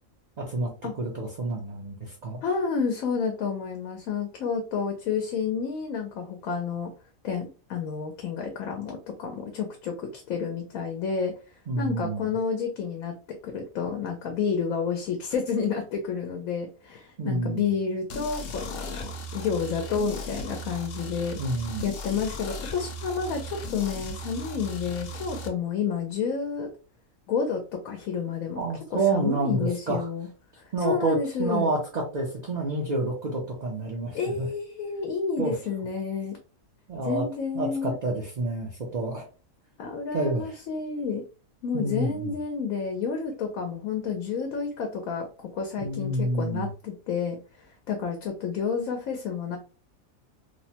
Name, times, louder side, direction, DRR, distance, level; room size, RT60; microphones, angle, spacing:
voice 1, 0.4-0.7 0.9-2.4 11.7-12.3 17.2-17.7 21.4-21.8 28.6-30.1 30.7-34.5 35.4-35.5 36.9-37.2 37.5-39.2 40.1-40.4 41.7-42.3 45.8-46.7, right 2 dB, 50° right, -2 dB, 0.5 m, -28 dB
voice 2, 2.4-6.9 7.2-11.3 11.8-13.1 13.4-21.4 21.8-26.7 27.3-28.6 28.9-30.3 30.6-31.7 34.1-36.4 37.0-37.9 39.8-41.2 41.6-49.6, left 6 dB, 85° left, 3 dB, 1.0 m, -30 dB
sound 1, 18.1-25.5, equal, 65° left, 0.6 m, -37 dB
3.0 x 2.1 x 2.7 m, 0.35 s
omnidirectional pair, 1.4 m